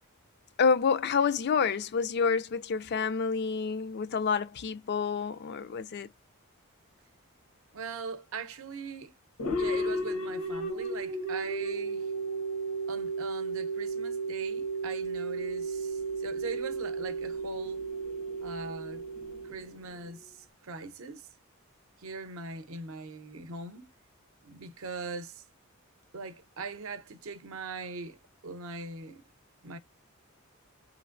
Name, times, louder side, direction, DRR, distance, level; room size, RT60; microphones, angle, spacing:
voice 1, 0.6-6.1, left 5 dB, 50° left, 0.3 m, -28 dB
voice 2, 7.7-9.1 9.6-12.1 12.9-17.8 18.4-19.1 19.4-20.4 20.6-21.3 22.0-23.9 24.4-25.4 26.1-28.2 28.4-29.2 29.6-29.8, right 4 dB, 70° right, 0.6 m, -41 dB
sound 1, 9.4-20.1, right 2 dB, 90° left, 1.2 m, -34 dB
3.1 x 2.5 x 2.5 m
head